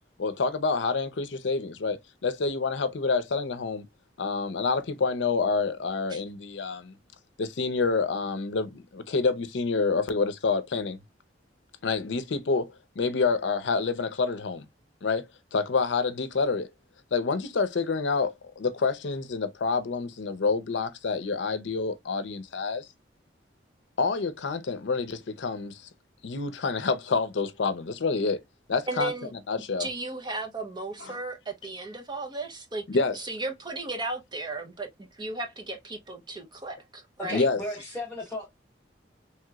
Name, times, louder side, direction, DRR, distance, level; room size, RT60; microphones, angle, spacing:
voice 1, 0.2-3.9 4.2-6.9 7.4-11.0 11.8-14.7 15.0-15.3 15.5-16.7 17.1-22.9 24.0-25.8 26.2-28.4 28.7-29.1 29.5-29.9 31.1-31.2 32.9-33.2 37.3-37.6, left 4 dB, 75° left, 0.5 m, -27 dB
voice 2, 28.9-29.3 29.8-32.8 33.1-37.4, right 2 dB, 25° right, 0.7 m, -35 dB
voice 3, 37.2-38.5, left 1 dB, 10° left, 0.9 m, -35 dB
3.1 x 2.9 x 2.2 m
head